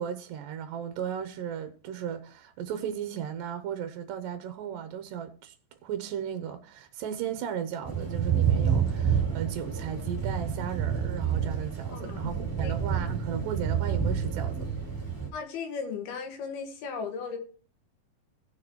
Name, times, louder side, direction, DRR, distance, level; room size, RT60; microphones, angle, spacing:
voice 1, 0.0-5.5 5.8-14.7, right 9 dB, 75° right, 2.3 m, -35 dB
Thunder / Rain, 7.8-15.3, right 7 dB, 5° right, 2.3 m, -28 dB
voice 2, 11.9-12.3 12.6-12.7 15.3-17.4, left 5 dB, 85° left, 3.5 m, -36 dB
18.0 x 6.6 x 3.0 m
omnidirectional pair, 4.3 m